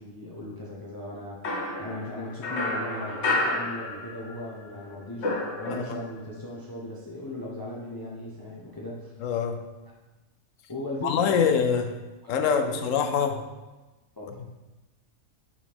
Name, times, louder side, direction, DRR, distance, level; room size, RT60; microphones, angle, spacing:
voice 1, 0.0-5.3 5.6-9.1 10.7-11.5 12.2-13.4 14.2-14.5, left 1 dB, 20° left, -4 dB, 0.7 m, -38 dB
sound 1, 1.4-4.5 4.7-6.2, left 2 dB, 55° left, 1.3 m, -30 dB
voice 2, 5.7-6.0 9.2-9.6 11.0-11.9 12.3-13.4, left 7 dB, 70° left, 7 dB, 0.9 m, -25 dB
5.4 x 4.9 x 3.5 m, 1.1 s
omnidirectional pair, 1.4 m